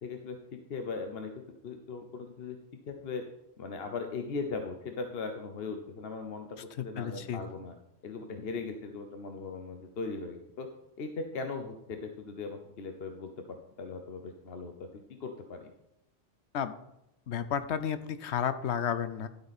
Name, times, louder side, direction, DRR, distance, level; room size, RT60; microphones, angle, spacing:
voice 1, 0.0-1.3 1.6-2.6 2.9-3.2 3.6-7.7 8.0-10.7 11.0-15.7, left 4 dB, 65° left, 5 dB, 1.1 m, -39 dB
voice 2, 6.8-7.4 16.5-16.7 17.3-19.3, left 8 dB, 90° left, 12 dB, 1.0 m, -32 dB
12.0 x 8.0 x 4.2 m, 0.85 s
omnidirectional pair, 1.1 m